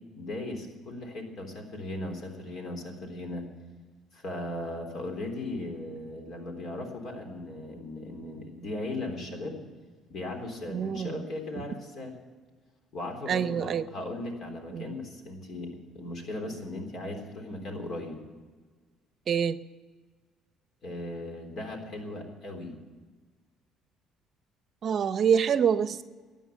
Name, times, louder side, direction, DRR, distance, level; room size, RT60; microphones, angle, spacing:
voice 1, 0.2-3.4 4.1-9.6 10.1-12.1 12.9-18.2 20.8-22.7, left 2 dB, 60° left, 3 dB, 3.7 m, -37 dB
voice 2, 10.7-11.2 13.3-13.9 14.7-14.9 19.3-19.6 24.8-26.0, right 7 dB, 50° right, 14 dB, 0.7 m, -26 dB
13.5 x 9.2 x 9.3 m, 1.4 s
supercardioid pair, 85°, 0 cm